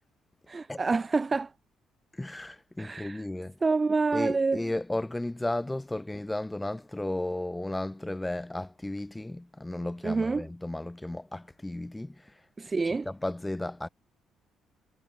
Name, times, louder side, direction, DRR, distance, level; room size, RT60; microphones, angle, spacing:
voice 1, 0.5-1.5 2.8-3.2 3.6-4.6 10.0-10.5 12.6-13.1, right 4 dB, 30° right, 0.7 m, -27 dB
voice 2, 2.1-3.6 4.1-12.3 12.8-13.9, left 1 dB, 15° left, 2.9 m, -34 dB
hypercardioid pair, 50°, 0 cm